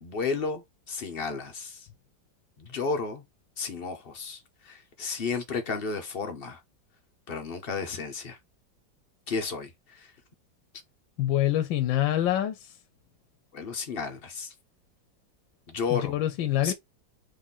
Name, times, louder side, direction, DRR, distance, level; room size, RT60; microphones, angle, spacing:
voice 1, 0.0-1.8 2.6-3.2 3.6-4.4 4.7-6.6 7.3-8.4 9.3-9.7 13.5-14.5 15.7-16.1 16.6-16.7, left 5 dB, 60° left, 0.6 m, -32 dB
voice 2, 11.2-12.6 15.9-16.7, left 13 dB, 85° left, 1.3 m, -25 dB
3.9 x 3.2 x 3.8 m
omnidirectional pair, 2.1 m